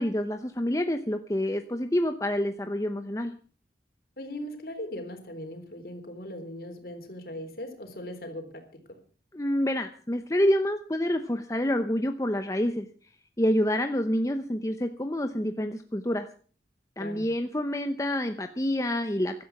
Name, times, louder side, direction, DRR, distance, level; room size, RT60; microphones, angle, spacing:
voice 1, 0.0-3.3 9.3-12.9 13.4-16.3 17.0-19.4, left 1 dB, 20° left, 7 dB, 0.8 m, -27 dB
voice 2, 4.2-9.0 17.0-17.3, left 1 dB, 55° left, 6 dB, 3.7 m, -39 dB
16.0 x 12.5 x 6.0 m, 0.43 s
head